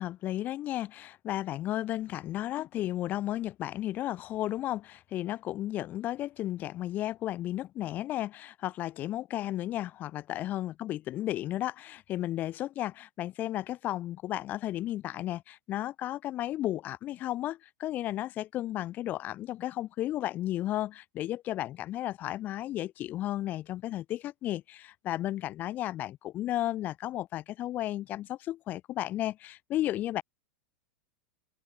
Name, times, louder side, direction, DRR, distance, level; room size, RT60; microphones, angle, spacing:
voice 1, 0.0-30.2, left 14 dB, 20° left, 0.6 m, -34 dB
open air
supercardioid pair, 175°, 8 cm